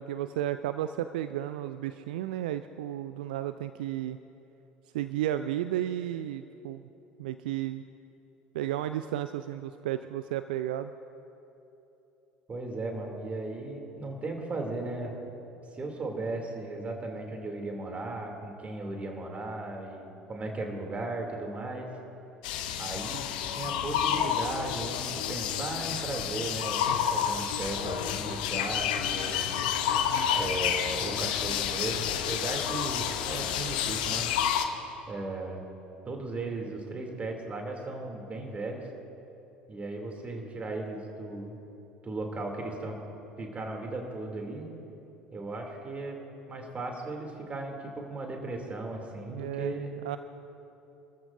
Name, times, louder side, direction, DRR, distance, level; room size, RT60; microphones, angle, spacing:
voice 1, 0.0-4.2 4.9-6.8 7.2-7.8 8.5-10.9 49.3-50.2, right 12 dB, 65° right, 11 dB, 0.4 m, -33 dB
voice 2, 12.5-15.1 15.7-21.9 22.8-23.3 23.5-29.5 30.3-34.3 35.1-35.6 36.1-38.9 39.7-41.6 42.0-43.0 43.4-44.7 45.3-46.2 46.5-49.9, right 2 dB, 25° right, 1 dB, 2.7 m, -36 dB
sound 1, 22.4-34.7, left 9 dB, 65° left, 0.8 m, -30 dB
26.5 x 14.0 x 2.6 m, 3.0 s
figure-of-eight pair, 65°, 5 cm